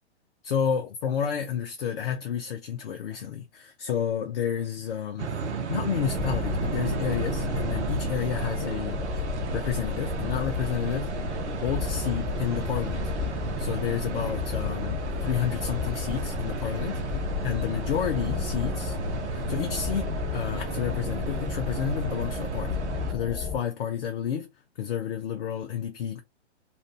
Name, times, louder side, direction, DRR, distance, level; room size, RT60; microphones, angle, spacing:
voice 1, 0.4-5.3 5.7-9.3 9.5-11.1 11.6-17.0 17.4-19.0 19.3-22.8 23.1-24.5 24.8-26.2, left 8 dB, 55° left, 0.7 m, -30 dB
sound 1, 5.2-23.1, right 4 dB, 70° right, 0.8 m, -33 dB
sound 2, 6.0-23.6, left 6 dB, 10° left, 1.3 m, -33 dB
2.5 x 2.5 x 3.2 m
figure-of-eight pair, 125°, 35 cm